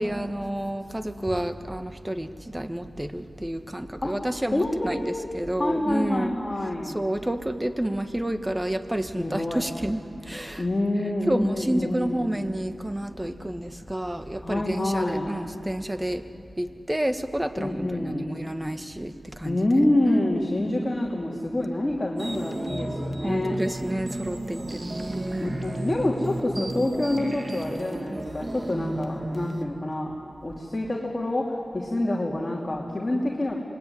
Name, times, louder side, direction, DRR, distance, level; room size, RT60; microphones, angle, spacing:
voice 1, 0.0-6.3 6.9-10.6 11.3-16.2 16.6-19.6 20.1-20.3 23.2-25.6, right 1 dB, 15° right, 8 dB, 1.5 m, -30 dB
voice 2, 4.5-5.3 5.6-7.0 9.1-9.7 10.6-12.3 14.4-15.3 17.6-18.3 19.4-23.6 25.4-30.1 30.4-33.5, left 1 dB, 30° left, -2 dB, 3.0 m, -27 dB
sound 1, 22.2-29.6, right 1 dB, 40° right, 2.0 m, -33 dB
26.5 x 20.0 x 10.0 m, 2.6 s
cardioid pair, 55°, 0 cm